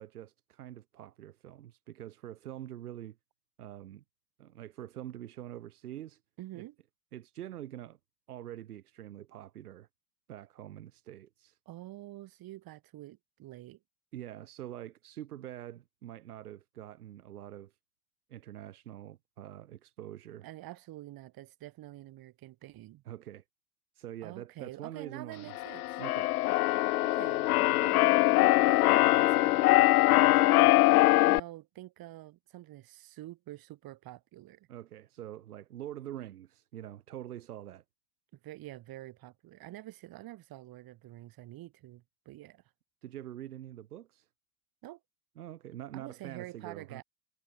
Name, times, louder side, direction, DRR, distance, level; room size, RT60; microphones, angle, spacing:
voice 1, 0.0-3.2 3.6-4.0 4.4-6.2 6.5-6.7 7.1-8.0 8.3-9.9 10.3-11.6 14.1-17.7 18.3-20.5 23.1-23.4 24.0-25.6 26.0-26.3 34.7-37.8 43.0-44.3 45.4-47.0, right 12 dB, 75° right, 3.8 m, -45 dB
voice 2, 6.4-6.8 11.7-13.8 20.4-23.0 24.2-26.0 27.0-27.5 27.8-30.0 30.3-30.7 31.2-34.7 38.4-42.6 44.8-45.0 45.9-47.0, right 16 dB, 50° right, 7.2 m, -47 dB
Keyboard (musical), 25.5-31.4, left 18 dB, 75° left, 0.6 m, -23 dB
hypercardioid pair, 70°, 45 cm